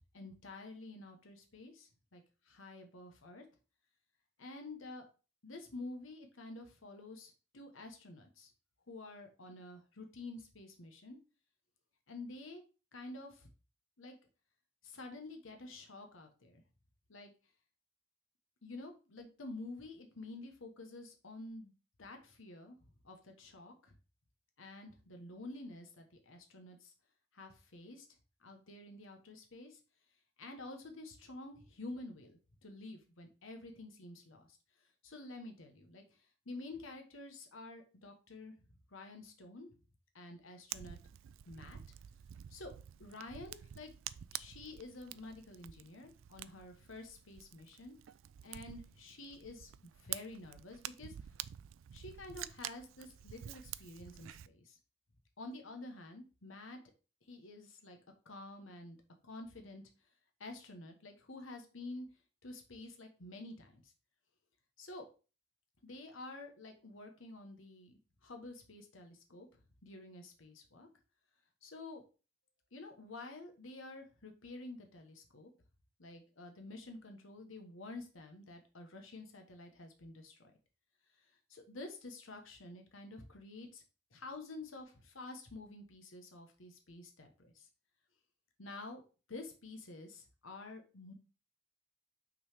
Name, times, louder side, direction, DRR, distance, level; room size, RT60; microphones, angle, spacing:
voice 1, 0.1-3.4 4.4-5.1 5.4-8.5 8.9-11.2 12.1-12.6 12.9-13.5 14.0-14.1 14.8-16.6 17.1-17.3 18.6-21.7 22.0-22.8 23.0-23.9 24.6-26.9 27.3-28.1 28.4-29.8 30.4-34.6 35.0-38.5 38.9-39.7 40.1-41.0 41.5-41.8 42.5-42.7 43.0-43.9 44.3-47.9 48.4-51.1 51.9-54.8 55.4-56.8 57.2-58.0 58.2-59.0 59.2-59.8 60.4-62.1 62.4-63.9 64.8-65.1 65.8-69.5 69.8-70.9 71.6-72.0 72.7-75.5 76.0-80.5 81.5-83.8 84.1-87.7 88.6-89.0 89.3-91.1, left 2 dB, 85° left, 4 dB, 1.2 m, -49 dB
Fire, 40.7-54.5, right 12 dB, 80° right, 0.3 m, -48 dB
6.0 x 4.0 x 4.9 m, 0.34 s
head